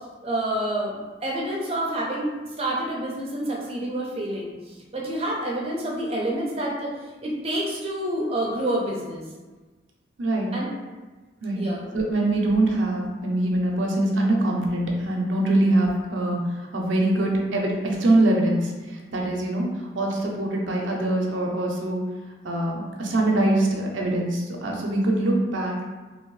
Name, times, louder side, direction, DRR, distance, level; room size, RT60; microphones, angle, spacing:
voice 1, 0.2-2.3 2.6-6.9 7.2-9.2 10.5-10.8 11.6-11.9, right 1 dB, 30° right, -3 dB, 0.6 m, -28 dB
voice 2, 10.2-10.5 11.4-11.6 11.9-19.7 20.0-22.0 22.4-25.8, right 1 dB, 85° right, -1 dB, 0.6 m, -23 dB
2.9 x 2.7 x 3.1 m, 1.3 s
head